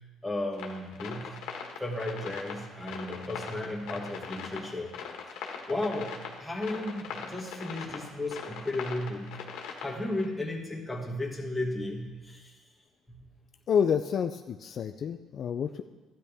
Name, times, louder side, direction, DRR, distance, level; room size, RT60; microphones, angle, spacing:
voice 1, 0.2-1.4 1.8-4.9 5.3-9.4 9.8-12.5 13.1-13.2, left 1 dB, 5° left, -2 dB, 2.1 m, -34 dB
sound 1, 0.5-10.3, left 6 dB, 80° left, 1.6 m, -41 dB
voice 2, 13.7-15.8, left 7 dB, 55° left, 7 dB, 0.4 m, -28 dB
12.5 x 10.0 x 3.6 m, 1.2 s
cardioid pair, 100°, 0 cm